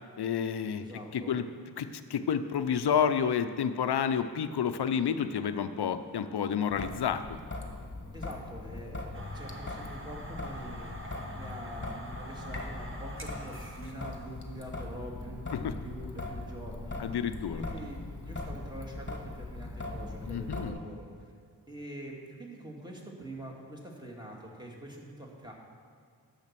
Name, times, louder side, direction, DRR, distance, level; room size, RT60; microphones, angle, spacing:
voice 1, 0.2-0.9 1.1-1.4 1.8-7.4 15.6-15.7 17.0-17.6 20.3-20.8, left 7 dB, 70° left, 10 dB, 0.7 m, -30 dB
voice 2, 0.8-1.4 8.1-17.2 17.5-21.3 21.7-25.5, right 1 dB, 10° right, -2 dB, 1.9 m, -45 dB
Traffic noise roadway noise / Drip / Trickle dribble, 6.7-20.7, left 2 dB, 30° left, 1.3 m, -40 dB
sound 1, 9.1-14.3, right 1 dB, 30° right, 1.1 m, -45 dB
10.5 x 7.2 x 5.9 m, 2.1 s
wide cardioid pair, 95°, 40 cm